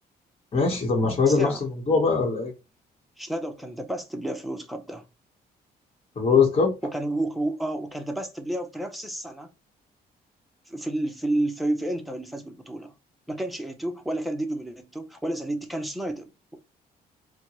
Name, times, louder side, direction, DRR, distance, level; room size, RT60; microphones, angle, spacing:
voice 1, 0.5-2.5 6.2-6.7, left 4 dB, 35° left, 1.3 m, -22 dB
voice 2, 1.3-1.6 3.2-5.1 6.8-9.5 10.7-12.9 13.3-16.6, right 1 dB, ahead, 0.8 m, -30 dB
4.3 x 2.3 x 3.1 m
cardioid pair, 95°, 17 cm